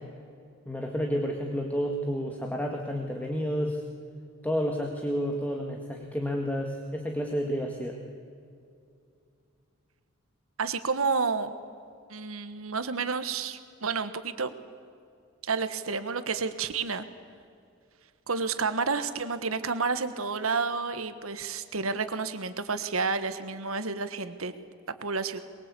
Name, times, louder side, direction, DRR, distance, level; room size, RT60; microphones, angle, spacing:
voice 1, 0.7-3.8 4.4-8.0, equal, 10° left, 1 dB, 1.8 m, -30 dB
voice 2, 10.6-11.5 12.1-14.5 15.4-17.0 18.3-24.5 25.0-25.4, right 4 dB, 85° right, 11 dB, 1.4 m, -30 dB
22.5 x 22.5 x 8.4 m, 2.4 s
head